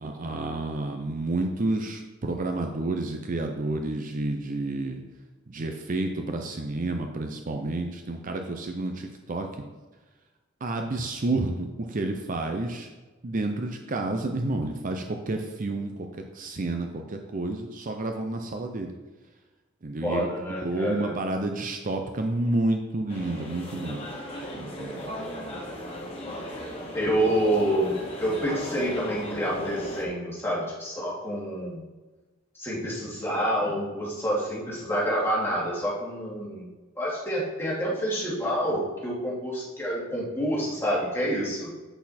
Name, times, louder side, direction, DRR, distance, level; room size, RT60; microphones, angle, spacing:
voice 1, 0.0-5.0 5.5-9.5 10.6-12.9 13.2-16.1 16.3-18.9 19.8-24.1 24.5-25.0, right 2 dB, 40° right, 4 dB, 0.6 m, -30 dB
voice 2, 20.0-21.2 26.9-31.8 32.6-36.7 37.0-41.7, equal, 10° left, -6 dB, 2.3 m, -28 dB
sound 1, 23.1-30.0, equal, 30° left, 1.7 m, -37 dB
8.0 x 6.3 x 4.3 m, 1.2 s
head